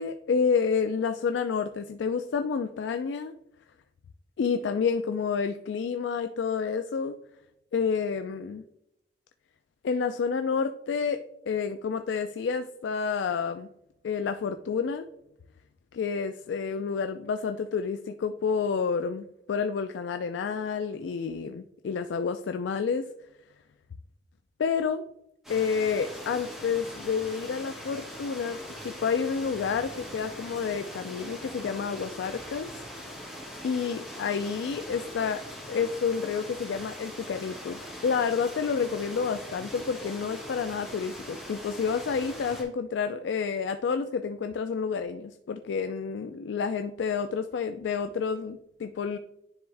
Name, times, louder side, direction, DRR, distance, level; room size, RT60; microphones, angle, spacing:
voice 1, 0.0-3.3 4.4-7.1 7.7-8.6 9.8-13.7 14.0-15.0 15.9-23.1 24.6-25.0 25.5-32.7 33.6-49.2, left 6 dB, 80° left, 8 dB, 0.3 m, -29 dB
sound 1, 25.4-42.6, equal, ahead, 1.8 m, -42 dB
10.0 x 3.5 x 3.3 m, 0.81 s
head